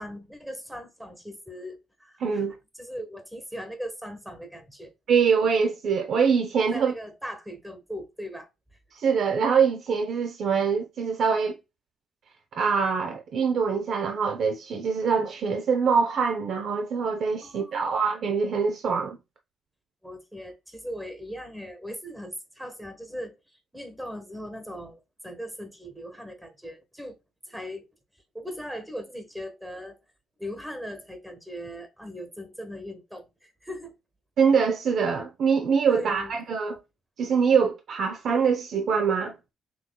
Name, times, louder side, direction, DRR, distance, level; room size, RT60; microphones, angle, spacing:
voice 1, 0.0-2.4 2.8-4.9 6.7-8.5 17.4-18.0 20.0-23.4 23.7-27.2 27.5-27.9 28.3-30.0 30.4-34.0 35.9-36.3, equal, 5° right, 1.3 m, -39 dB
voice 2, 2.2-2.6 5.1-6.9 8.9-11.6 12.6-19.2 34.4-36.8 37.2-39.4, right 6 dB, 65° right, 0.7 m, -24 dB
6.2 x 3.0 x 2.3 m
cardioid pair, 90°, 0 cm